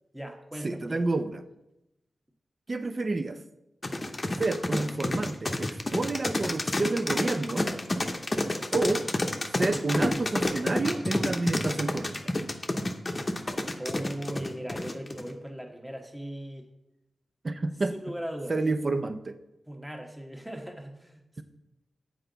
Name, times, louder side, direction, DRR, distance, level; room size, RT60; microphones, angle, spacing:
voice 1, 0.1-1.1 13.8-16.7 17.9-18.6 19.7-21.4, equal, 5° right, 3 dB, 1.1 m, -39 dB
voice 2, 0.6-1.4 2.7-3.4 4.4-7.7 8.7-9.1 9.6-12.1 17.4-17.9 18.5-19.4, right 3 dB, 45° right, 11 dB, 0.5 m, -29 dB
sound 1, 3.8-15.3, left 2 dB, 35° left, 0.7 m, -29 dB
7.8 x 4.6 x 3.9 m, 0.91 s
cardioid pair, 60°, 0 cm